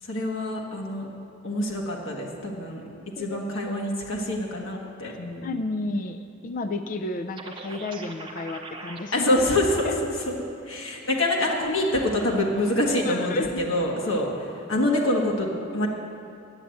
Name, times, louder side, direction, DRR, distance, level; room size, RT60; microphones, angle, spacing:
voice 1, 0.0-1.1 1.4-2.8 3.2-5.5 9.1-9.9 10.3-10.4 10.7-15.9, left 1 dB, 80° left, -1 dB, 1.4 m, -26 dB
voice 2, 5.4-9.4 9.8-9.9 13.0-13.6, left 2 dB, 40° left, 9 dB, 0.4 m, -32 dB
sound 1, 7.4-9.0, right 3 dB, 25° right, 0.8 m, -40 dB
9.6 x 8.3 x 7.6 m, 2.6 s
head